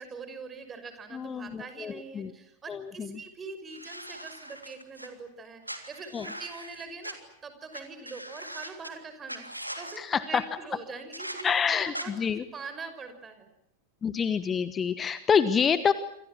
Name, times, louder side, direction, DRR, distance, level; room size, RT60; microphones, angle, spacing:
voice 1, 0.0-7.2 7.4-9.4 9.8-12.1 12.5-13.5, right 4 dB, 20° right, 8 dB, 5.8 m, -43 dB
voice 2, 1.1-2.3 2.7-3.2 6.1-6.3 10.0-10.4 11.4-12.4 14.0-15.9, left 7 dB, 20° left, 14 dB, 1.2 m, -27 dB
sound 1, 3.7-5.1 5.6-7.1 7.7-7.8 8.0-8.9 9.3-10.0 11.1-11.4 11.9-12.1, right 1 dB, 90° right, 3.1 m, -40 dB
28.5 x 26.5 x 6.1 m, 0.79 s
figure-of-eight pair, 90°, 0 cm